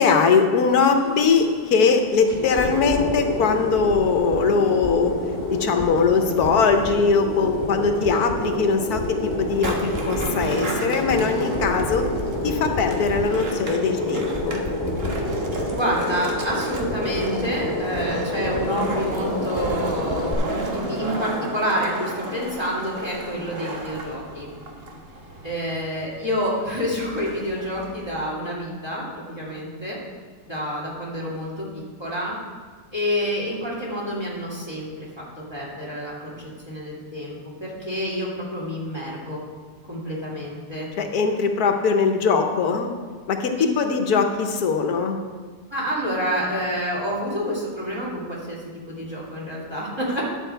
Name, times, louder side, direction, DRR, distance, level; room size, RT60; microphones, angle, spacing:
voice 1, 0.0-5.1 5.5-12.1 12.4-14.6 41.0-42.9 43.3-45.2, left 5 dB, 75° left, 5 dB, 1.4 m, -21 dB
sound 1, 0.7-20.3, left 1 dB, 10° left, 1.6 m, -28 dB
Skateboard, 9.5-28.1, right 2 dB, 40° right, 1.3 m, -34 dB
voice 2, 15.7-24.5 25.4-30.0 30.5-32.4 32.9-39.4 39.9-40.9 43.5-43.6 45.7-50.3, equal, 15° right, -6 dB, 2.5 m, -28 dB
11.0 x 7.5 x 4.5 m, 1.5 s
omnidirectional pair, 1.6 m